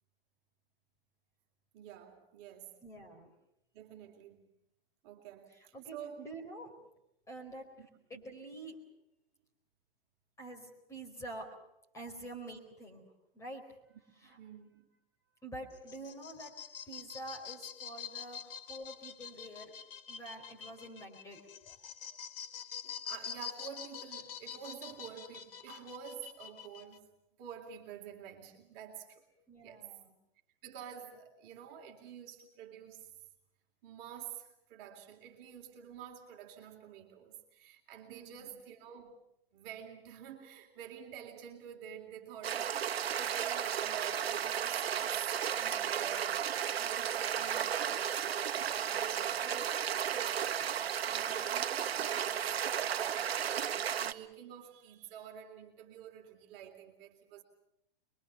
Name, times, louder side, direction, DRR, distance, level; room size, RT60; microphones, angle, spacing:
voice 1, 1.7-2.8 3.7-4.5 5.0-6.2 7.8-7.9 8.1-8.2 14.2-14.9 16.3-16.4 22.8-27.1 27.4-29.2 29.6-29.9 30.6-33.1 33.8-39.1 39.5-42.8 43.2-53.3 54.0-57.4, right 8 dB, 35° right, 3 dB, 3.6 m, -49 dB
voice 2, 2.8-3.3 5.5-6.7 7.3-7.7 8.1-8.8 10.4-11.5 11.9-13.6 14.2-14.4 15.4-16.5 16.8-19.7 20.1-21.4 29.5-30.1 38.1-38.6 48.9-49.3, right 1 dB, 10° left, 1 dB, 4.3 m, -47 dB
sound 1, 15.7-27.0, left 8 dB, 65° left, 1.9 m, -46 dB
sound 2, 42.4-54.1, right 9 dB, 85° right, 1.2 m, -34 dB
25.5 x 23.0 x 7.0 m, 0.81 s
hypercardioid pair, 145°, 30 cm